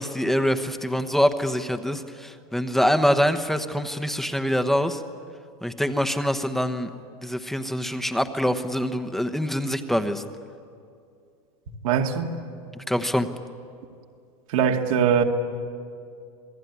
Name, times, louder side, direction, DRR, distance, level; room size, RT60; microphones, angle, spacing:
voice 1, 0.0-5.0 5.6-6.9 7.2-10.2 12.9-13.3, equal, ahead, 1.1 m, -24 dB
voice 2, 11.8-12.3 14.5-15.2, right 7 dB, 70° right, 2.3 m, -21 dB
27.5 x 18.5 x 9.6 m
supercardioid pair, 140°, 18 cm